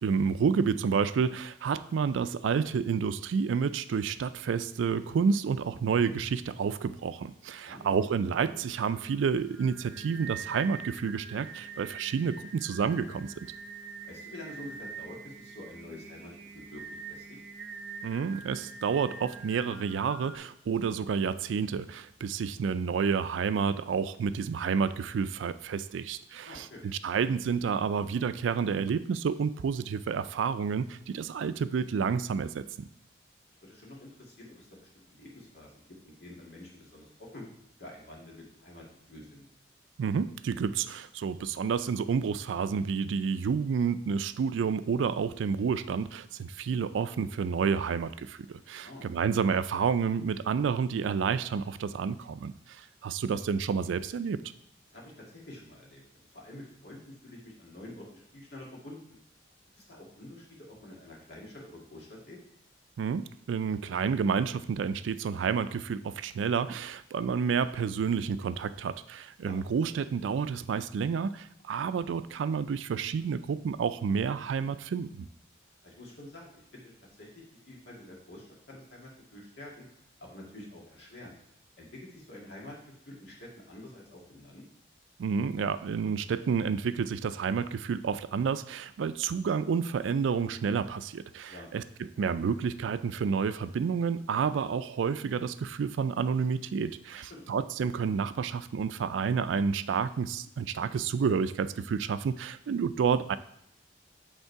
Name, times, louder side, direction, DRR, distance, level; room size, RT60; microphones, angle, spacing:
voice 1, 0.0-13.5 18.0-26.7 27.0-32.6 40.0-54.4 63.0-75.3 85.2-91.8 92.2-103.4, right 6 dB, 85° right, 13 dB, 0.3 m, -30 dB
voice 2, 7.6-8.0 14.0-17.4 26.4-26.8 33.6-34.7 34.9-37.4 37.8-39.4 48.8-49.1 54.9-56.0 56.3-59.2 59.7-62.4 69.4-69.6 75.8-76.9 77.2-79.8 80.2-81.4 81.8-82.8 83.1-84.7 91.5-91.7 97.1-97.4, left 1 dB, 60° left, -3 dB, 1.9 m, -48 dB
Singing, 7.8-20.4, right 5 dB, 60° right, 0.8 m, -45 dB
8.1 x 3.7 x 4.6 m, 0.72 s
head